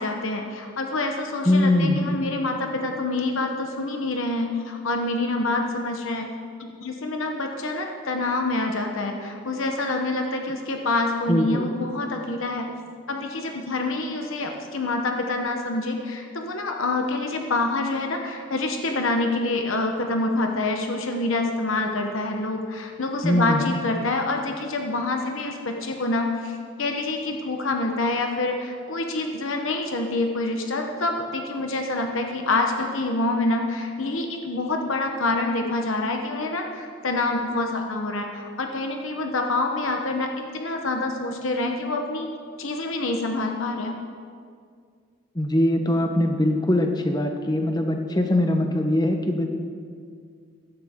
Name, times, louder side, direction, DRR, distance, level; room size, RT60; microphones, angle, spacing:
voice 1, 0.0-6.3 6.6-12.7 13.1-42.3 42.6-44.0, left 2 dB, 70° left, 3 dB, 1.0 m, -26 dB
voice 2, 1.4-2.1 11.3-11.6 23.2-23.6 45.3-49.5, left 1 dB, 20° left, 4 dB, 1.0 m, -22 dB
16.0 x 12.5 x 3.7 m, 2.2 s
head